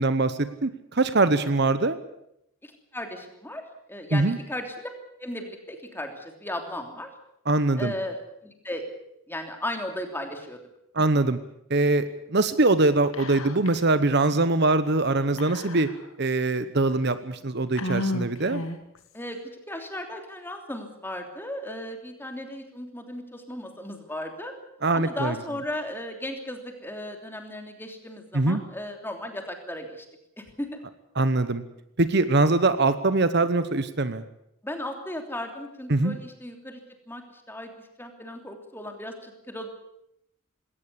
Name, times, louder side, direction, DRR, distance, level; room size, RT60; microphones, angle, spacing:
voice 1, 0.0-2.0 4.1-4.4 7.5-7.9 10.9-11.4 11.7-15.9 16.2-18.6 24.8-25.3 28.3-28.6 31.2-31.6 32.0-34.2 35.9-36.2, right 2 dB, 50° right, 12 dB, 1.0 m, -23 dB
voice 2, 2.6-3.6 3.9-4.9 5.2-7.1 7.8-8.8 9.3-10.6 19.1-19.4 19.7-24.5 24.9-30.0 30.4-30.8 34.6-36.8 37.1-37.7 38.0-39.7, left 1 dB, 10° left, 4 dB, 3.1 m, -36 dB
Whispering, 13.1-13.8 14.1-14.2 15.4-16.2 16.9-17.0 17.8-19.0, left 1 dB, 80° left, 2.1 m, -32 dB
20.0 x 17.5 x 8.5 m, 0.77 s
head